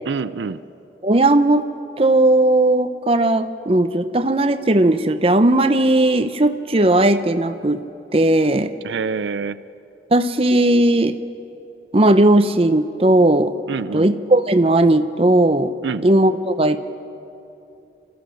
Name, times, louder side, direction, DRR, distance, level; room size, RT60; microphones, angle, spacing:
voice 1, 0.1-0.6 8.8-9.6 13.7-14.1 15.8-16.1, right 5 dB, 80° right, 14 dB, 0.5 m, -26 dB
voice 2, 1.0-1.7 2.0-7.8 8.1-8.7 10.1-11.2 11.9-13.5 13.9-15.7 16.0-16.8, right 1 dB, 30° right, 10 dB, 0.7 m, -16 dB
28.0 x 13.5 x 7.8 m, 2.8 s
head